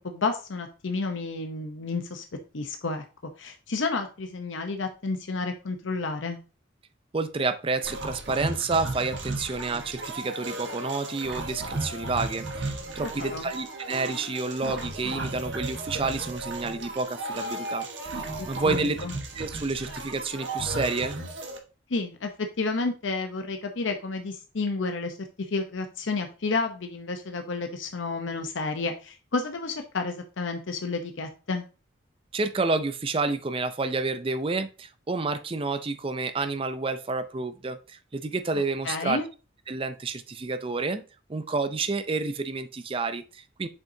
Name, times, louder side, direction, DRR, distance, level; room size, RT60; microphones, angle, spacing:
voice 1, 0.0-2.2 2.5-3.0 3.4-6.4 13.0-13.5 18.4-19.1 21.9-22.3 22.6-25.2 25.5-31.6 38.8-39.2, left 3 dB, 75° left, 5 dB, 0.7 m, -31 dB
voice 2, 7.1-19.0 19.3-21.2 32.3-39.2 39.7-41.0 41.3-43.7, right 3 dB, 30° right, 12 dB, 0.4 m, -29 dB
sound 1, 7.8-21.6, right 2 dB, 70° right, 1.3 m, -35 dB
7.1 x 5.5 x 2.7 m, 0.33 s
head